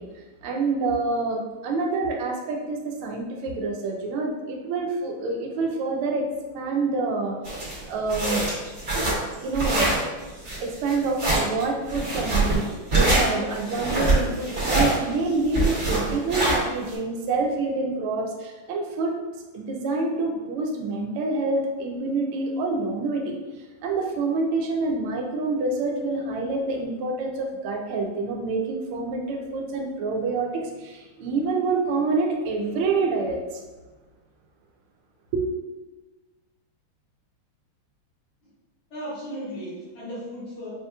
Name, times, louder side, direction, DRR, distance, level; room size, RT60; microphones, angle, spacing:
voice 1, 0.0-6.3 6.5-8.4 9.4-9.9 10.6-19.2 19.5-33.6 35.3-35.4, right 3 dB, 85° right, 1 dB, 1.5 m, -27 dB
sound 1, 7.4-16.9, right 2 dB, 40° right, 1.7 m, -24 dB
voice 2, 38.9-40.7, equal, 50° left, -15 dB, 2.2 m, -35 dB
5.5 x 2.9 x 2.2 m, 1.2 s
omnidirectional pair, 2.3 m